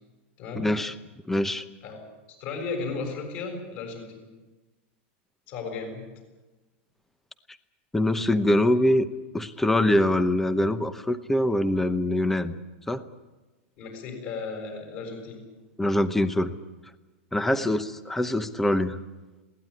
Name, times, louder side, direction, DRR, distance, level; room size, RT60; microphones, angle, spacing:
voice 1, 0.6-0.9 1.3-1.6 7.9-9.1 9.3-12.5 12.9-13.0 15.8-16.5 17.3-19.0, left 1 dB, 5° left, 13 dB, 0.8 m, -23 dB
voice 2, 2.3-4.3 5.5-6.0 13.8-15.4 17.5-17.7, left 4 dB, 40° left, 3 dB, 7.1 m, -35 dB
21.5 x 17.5 x 9.8 m, 1.2 s
supercardioid pair, 160°, 7 cm